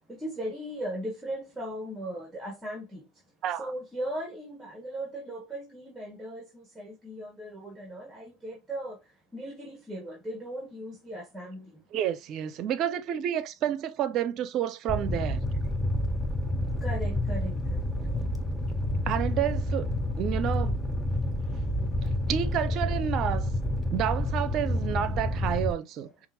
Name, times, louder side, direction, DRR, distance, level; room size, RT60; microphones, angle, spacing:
voice 1, 0.1-3.0 3.6-6.4 6.8-9.0 9.3-11.7 16.8-17.5 22.6-22.7, right 1 dB, 10° right, 1.6 m, -37 dB
voice 2, 11.9-15.4 19.0-19.9 20.2-20.8 22.3-23.5 23.9-26.3, right 10 dB, 50° right, 0.6 m, -30 dB
Fire, 14.9-25.7, left 1 dB, 10° left, 0.8 m, -29 dB
5.3 x 2.6 x 2.8 m
hypercardioid pair, 90°, 0 cm